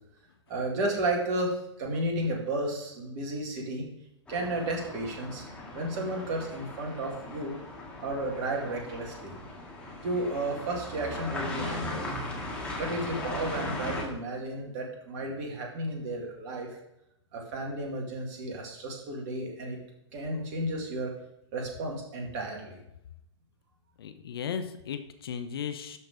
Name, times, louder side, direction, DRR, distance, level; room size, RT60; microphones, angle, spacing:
voice 1, 0.5-3.9 4.3-5.5 5.7-7.6 8.0-9.4 10.0-12.1 12.8-16.7 17.3-19.8 20.1-21.1 21.5-22.8, right 1 dB, 35° right, 0 dB, 2.2 m, -33 dB
sound 1, 4.3-14.0, left 2 dB, 5° left, 1.9 m, -38 dB
voice 2, 24.0-26.0, left 7 dB, 50° left, 9 dB, 0.8 m, -36 dB
12.0 x 4.4 x 5.1 m, 0.84 s
figure-of-eight pair, 115°, 16 cm